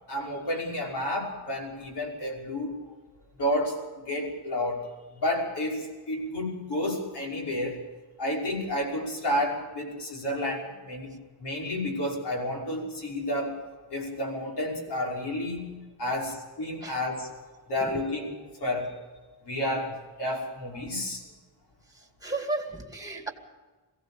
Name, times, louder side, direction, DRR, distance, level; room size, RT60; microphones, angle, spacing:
voice 1, 0.1-2.8 3.4-4.8 5.2-7.8 8.2-11.1 11.4-13.6 13.9-15.7 16.0-17.3 17.7-18.9 19.5-21.2, left 1 dB, 60° left, -1 dB, 5.8 m, -31 dB
voice 2, 22.2-23.3, right 2 dB, 10° right, 3 dB, 2.4 m, -33 dB
22.5 x 17.0 x 7.2 m, 1.3 s
wide cardioid pair, 160°, 44 cm